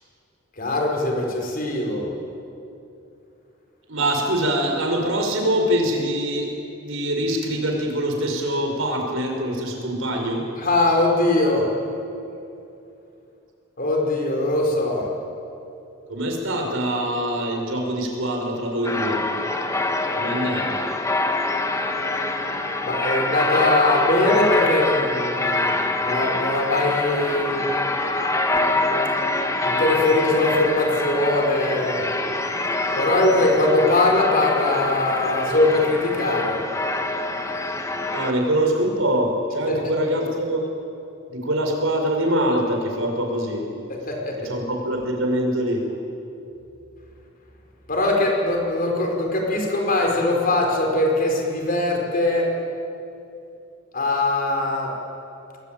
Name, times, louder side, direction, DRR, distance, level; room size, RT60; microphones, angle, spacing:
voice 1, 0.6-2.1 10.6-11.7 13.8-15.1 22.8-27.7 29.6-32.1 33.0-36.6 39.7-39.8 44.1-44.5 47.9-52.5 53.9-54.9, left 2 dB, 45° left, 1 dB, 5.0 m, -21 dB
voice 2, 3.9-6.5 6.8-10.4 16.1-19.2 20.2-20.8 38.1-40.6 41.3-43.7 44.4-45.8, right 1 dB, 70° right, 2 dB, 5.5 m, -24 dB
sound 1, 18.8-38.3, left 2 dB, 15° left, 1.6 m, -25 dB
27.0 x 21.0 x 9.1 m, 2.7 s
head